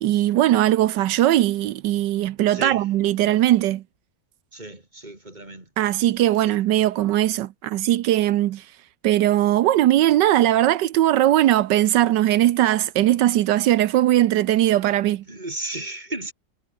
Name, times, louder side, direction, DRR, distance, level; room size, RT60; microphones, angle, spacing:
voice 1, 0.0-3.8 5.8-8.6 9.0-15.2, right 13 dB, 80° right, 1.4 m, -19 dB
voice 2, 4.5-5.6 15.3-16.3, right 2 dB, 25° right, 4.9 m, -33 dB
omnidirectional pair, 1.9 m